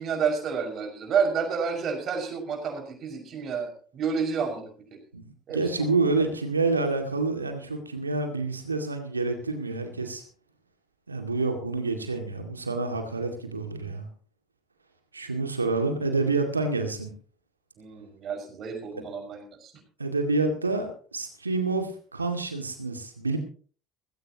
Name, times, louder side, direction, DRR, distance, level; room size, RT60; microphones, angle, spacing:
voice 1, 0.0-5.0 5.5-5.9 17.8-19.7, right 6 dB, 45° right, 4 dB, 6.1 m, -30 dB
voice 2, 5.1-10.2 11.1-14.1 15.1-17.1 20.0-23.4, right 3 dB, 90° right, 5 dB, 2.2 m, -28 dB
18.5 x 16.5 x 3.0 m, 0.42 s
figure-of-eight pair, 60°, 0 cm